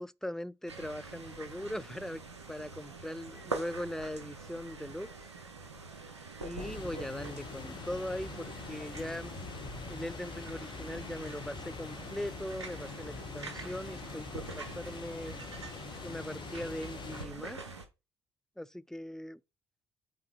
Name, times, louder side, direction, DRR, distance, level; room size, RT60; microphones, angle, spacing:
voice 1, 0.0-2.2 2.5-5.1 6.4-9.3 9.9-15.4 16.0-17.6 18.6-19.4, left 1 dB, 5° left, 0.6 m, -40 dB
sound 1, 0.7-17.9, right 3 dB, 85° right, 1.0 m, -45 dB
sound 2, 6.6-17.3, left 5 dB, 35° left, 0.8 m, -44 dB
8.4 x 3.9 x 4.1 m
figure-of-eight pair, 50°, 14 cm